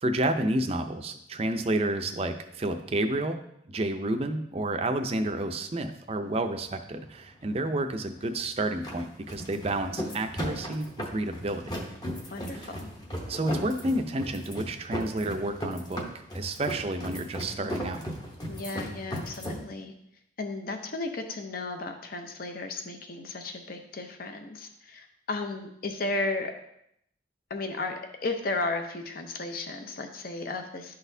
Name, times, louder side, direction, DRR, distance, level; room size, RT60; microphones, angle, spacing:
voice 1, 0.0-3.4 3.7-11.8 12.5-12.7 13.3-18.0, right 1 dB, 30° right, 6 dB, 0.5 m, -30 dB
sound 1, 6.2-19.6, equal, 20° left, 0.9 m, -37 dB
voice 2, 12.3-12.9 18.5-19.9 20.4-26.5 27.5-30.9, left 2 dB, 50° left, 6 dB, 0.6 m, -34 dB
11.5 x 4.0 x 2.7 m, 0.75 s
head